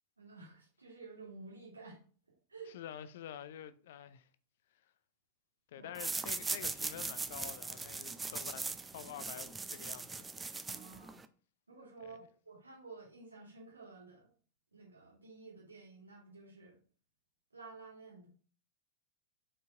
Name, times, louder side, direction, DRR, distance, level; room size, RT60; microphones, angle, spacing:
voice 1, 0.2-2.0 2.5-2.8 5.7-6.0 10.6-11.2 11.7-14.3 14.7-16.8 17.5-18.3, right 3 dB, 80° right, 2.6 m, -52 dB
voice 2, 2.7-4.3 5.7-10.3 12.0-12.1, left 10 dB, 55° left, 0.5 m, -48 dB
sound 1, 5.9-11.3, right 4 dB, 15° right, 0.5 m, -40 dB
5.5 x 4.5 x 3.8 m
figure-of-eight pair, 90°, 0 cm